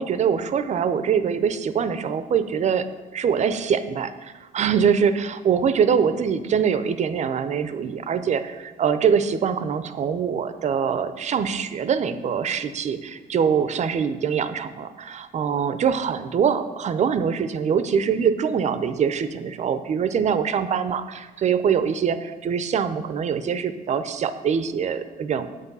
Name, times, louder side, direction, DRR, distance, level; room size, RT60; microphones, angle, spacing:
voice 1, 0.0-2.9 3.1-25.5, right 7 dB, 45° right, 12 dB, 0.7 m, -23 dB
8.2 x 7.9 x 5.5 m, 1.2 s
cardioid pair, 110°, 17 cm